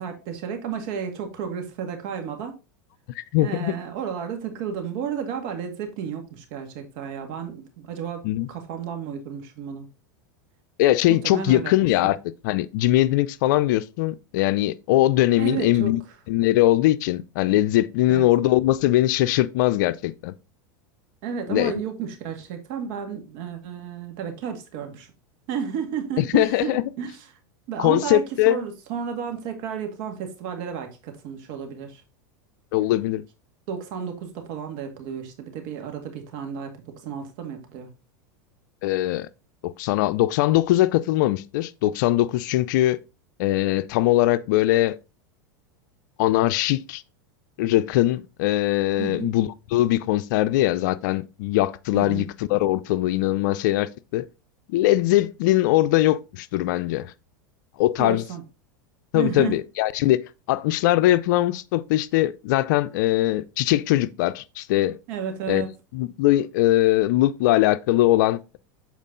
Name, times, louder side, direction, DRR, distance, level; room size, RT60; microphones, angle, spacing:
voice 1, 0.0-2.6 3.4-8.2 8.5-9.9 11.1-11.7 12.0-12.1 15.4-15.9 18.1-18.2 21.2-25.1 25.5-27.2 27.7-32.0 33.7-37.9 49.0-49.4 51.9-52.3 58.0-58.4 59.1-59.6 65.1-65.7, right 7 dB, 60° right, 2.0 m, -32 dB
voice 2, 3.2-3.8 8.2-8.5 10.8-12.2 12.4-16.0 16.3-20.3 21.5-21.7 26.2-26.8 27.8-28.6 32.7-33.2 38.8-39.3 39.6-43.0 43.4-45.0 46.2-47.0 47.6-52.2 52.5-54.2 54.7-57.1 57.8-58.2 59.1-60.2 60.5-65.0 65.5-65.6 65.9-68.6, left 15 dB, 65° left, 0.5 m, -21 dB
7.3 x 4.5 x 3.8 m
supercardioid pair, 120°, 11 cm